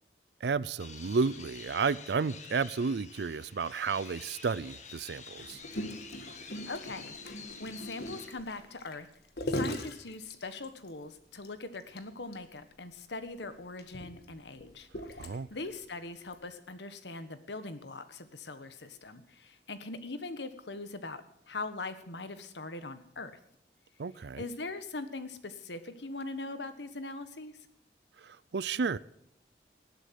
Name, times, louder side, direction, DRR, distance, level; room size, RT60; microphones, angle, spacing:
voice 1, 0.4-5.6 15.2-15.5 24.0-24.4 28.2-29.0, right 5 dB, 75° right, 0.5 m, -32 dB
sound 1, 0.8-8.3, left 5 dB, 40° left, 1.9 m, -49 dB
Gurgling, 5.4-10.9 11.4-11.5 11.8-12.0 12.3-12.4 13.2-15.7 16.3-16.5, left 1 dB, 65° left, 1.7 m, -39 dB
voice 2, 6.7-7.2 7.6-9.1 9.4-23.4 24.4-27.6, left 3 dB, 85° left, 1.4 m, -41 dB
18.0 x 8.3 x 7.5 m
head